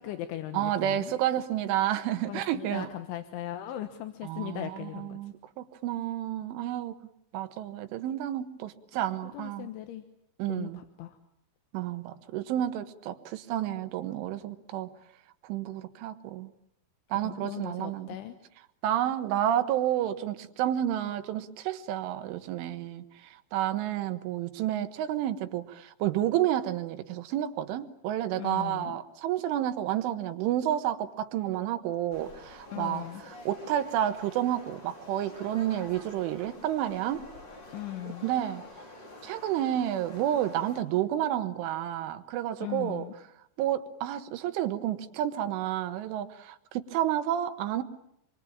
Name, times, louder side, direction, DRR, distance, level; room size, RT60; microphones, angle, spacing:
voice 1, 0.0-1.1 2.3-5.2 9.3-10.0 10.5-11.2 17.2-18.4 28.4-29.0 32.7-33.2 37.7-38.3 42.6-43.1, left 13 dB, 80° left, 3.6 m, -38 dB
voice 2, 0.5-2.9 4.2-7.0 7.3-9.7 10.4-10.8 11.7-14.9 15.4-16.5 17.1-18.1 18.8-23.1 23.5-37.2 38.2-38.6 39.2-43.1 43.6-47.8, right 12 dB, 85° right, 3.8 m, -30 dB
sound 1, 32.1-40.8, left 2 dB, 25° left, 3.6 m, -48 dB
26.5 x 24.0 x 8.7 m
omnidirectional pair, 5.4 m